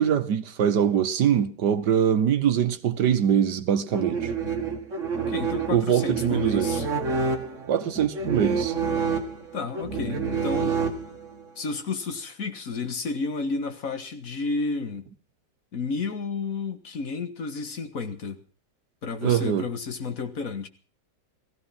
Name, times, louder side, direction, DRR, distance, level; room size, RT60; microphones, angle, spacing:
voice 1, 0.0-4.3 5.7-6.7 7.7-8.7 19.2-19.6, right 9 dB, 70° right, 1.7 m, -23 dB
sound 1, 3.9-11.4, right 5 dB, 45° right, 2.1 m, -28 dB
voice 2, 5.2-6.9 9.5-10.8 11.6-15.1 15.7-18.4 19.0-20.7, left 4 dB, 50° left, 1.9 m, -31 dB
16.0 x 15.5 x 5.8 m
omnidirectional pair, 1.9 m